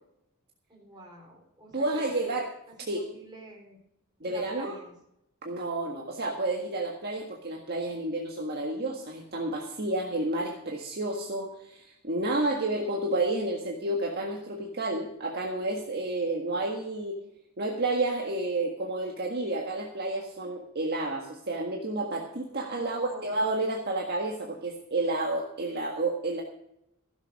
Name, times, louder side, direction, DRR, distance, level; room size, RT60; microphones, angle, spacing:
voice 1, 0.7-2.4 2.7-3.8 4.2-4.9 22.7-23.5, right 1 dB, 20° right, -1 dB, 4.3 m, -47 dB
voice 2, 1.7-2.5 2.9-3.1 4.2-4.8 5.4-17.2 17.6-26.4, right 2 dB, 45° right, 0 dB, 1.7 m, -30 dB
15.5 x 7.3 x 6.4 m, 0.79 s
head